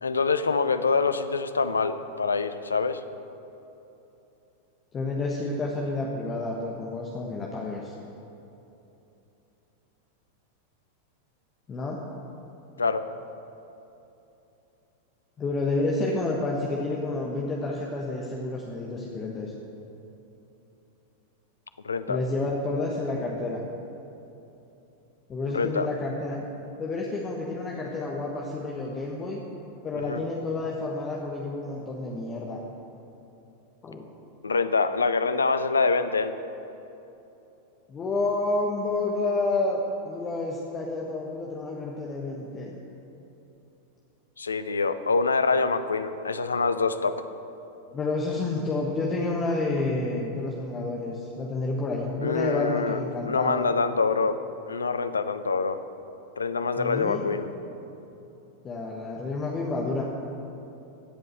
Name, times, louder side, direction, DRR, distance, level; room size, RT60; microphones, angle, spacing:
voice 1, 0.0-3.0 12.8-13.1 21.8-22.2 25.5-25.9 29.9-30.2 34.4-36.4 44.4-47.2 52.2-53.0 53.3-54.4 54.7-55.8 56.4-57.5, left 4 dB, 75° left, 11 dB, 0.6 m, -25 dB
voice 2, 4.9-7.9 11.7-12.0 15.4-19.5 22.1-23.6 25.3-26.4 26.8-29.4 29.8-32.6 33.8-34.0 37.9-42.7 47.9-53.7 56.8-57.3 58.6-60.0, left 2 dB, 25° left, -2 dB, 1.2 m, -29 dB
15.5 x 5.4 x 7.7 m, 2.9 s
figure-of-eight pair, 90°, 0 cm